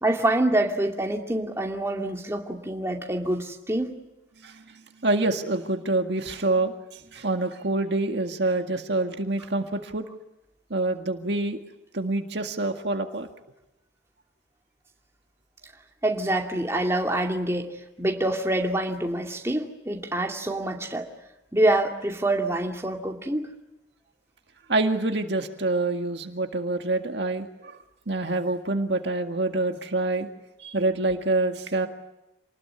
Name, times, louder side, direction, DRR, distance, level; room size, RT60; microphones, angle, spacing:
voice 1, 0.0-4.0 16.0-21.1 21.5-23.5, right 1 dB, 15° right, 1 dB, 2.6 m, -26 dB
voice 2, 4.4-10.1 10.7-11.6 11.9-13.3 24.7-27.8 28.1-30.3 30.6-31.9, right 2 dB, 65° right, 5 dB, 1.9 m, -26 dB
28.5 x 20.0 x 9.8 m, 0.94 s
head